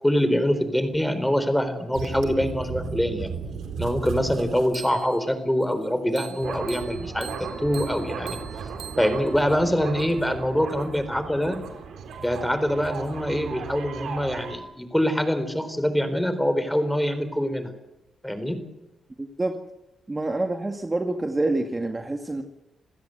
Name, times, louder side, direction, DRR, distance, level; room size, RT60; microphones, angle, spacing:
voice 1, 0.0-3.3 3.8-7.3 7.6-8.4 9.0-11.6 12.2-17.7 18.2-18.6, equal, 5° left, 10 dB, 4.1 m, -24 dB
sound 1, 1.9-5.3 6.2-14.6, right 6 dB, 80° right, 3.9 m, -35 dB
voice 2, 19.2-19.6 20.1-22.4, right 2 dB, 20° right, 5 dB, 2.0 m, -27 dB
27.5 x 16.0 x 8.1 m, 0.98 s
cardioid pair, 80°, 0 cm